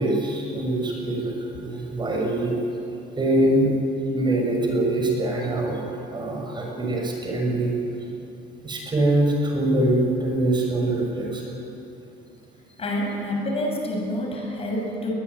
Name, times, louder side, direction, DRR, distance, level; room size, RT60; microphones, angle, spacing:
voice 1, 0.0-2.5 3.2-3.7 4.1-5.8 6.1-7.7 8.6-11.5, right 1 dB, 25° right, 0 dB, 6.2 m, -23 dB
voice 2, 12.8-15.1, left 1 dB, 35° left, 0 dB, 7.1 m, -27 dB
21.0 x 21.0 x 9.5 m, 2.9 s
cardioid pair, 110°, 17 cm